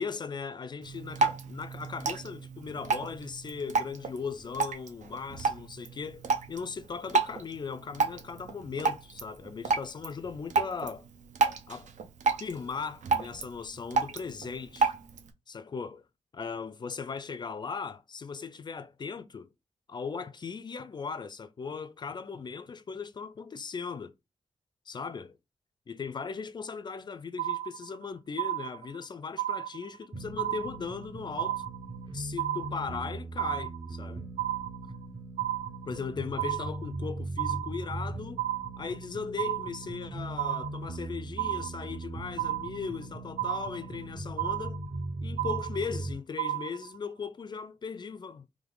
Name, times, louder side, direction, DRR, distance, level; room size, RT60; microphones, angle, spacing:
voice 1, 0.0-11.1 11.7-11.9 12.4-14.9 15.5-16.0 16.3-19.5 19.9-24.1 24.9-25.4 25.9-31.6 32.1-34.3 35.9-38.4 38.8-44.8 45.2-48.5, left 5 dB, 35° left, 0.4 m, -38 dB
Drip, 0.8-15.3, right 4 dB, 85° right, 0.7 m, -32 dB
sound 1, 27.4-28.0 28.4-29.0 29.4-30.0 30.4-31.0 31.4-32.0 32.4-33.0 33.4-34.0 34.4-35.0 35.4-36.0 36.4-37.0 37.4-38.0 38.4-39.0 39.4-40.0 40.4-41.0 41.4-42.0 42.4-43.0 43.4-44.0 44.4-45.0 45.4-46.0 46.4-47.0, right 13 dB, 65° right, 0.4 m, -33 dB
sound 2, 30.1-46.1, right 2 dB, 40° right, 0.9 m, -39 dB
3.5 x 3.1 x 3.8 m
wide cardioid pair, 170°, 12 cm